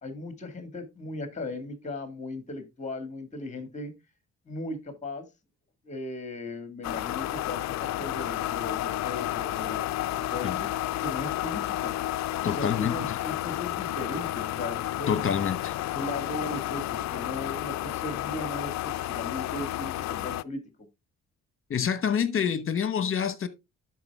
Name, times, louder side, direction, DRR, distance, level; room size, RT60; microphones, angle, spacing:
voice 1, 0.0-3.9 4.5-5.3 5.8-9.9 10.2-10.7 11.0-11.9 12.6-15.3 15.9-20.6, left 2 dB, 25° left, 1.9 m, -37 dB
sound 1, 6.8-20.4, left 14 dB, 65° left, 0.5 m, -31 dB
voice 2, 12.4-13.2 15.1-15.7 21.7-23.5, left 7 dB, 45° left, 1.2 m, -27 dB
12.0 x 4.8 x 3.4 m
cardioid pair, 90°, 30 cm